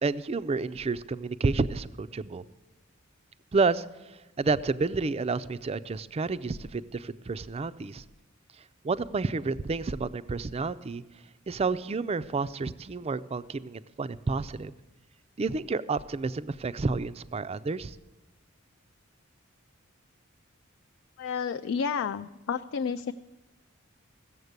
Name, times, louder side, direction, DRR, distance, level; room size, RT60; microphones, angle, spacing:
voice 1, 0.0-2.4 3.5-8.0 8.8-11.0 11.5-14.7 15.4-18.0, right 4 dB, 30° right, 14 dB, 0.4 m, -30 dB
voice 2, 21.2-23.1, left 6 dB, 60° left, 10 dB, 0.3 m, -31 dB
15.5 x 7.3 x 8.1 m, 1.1 s
head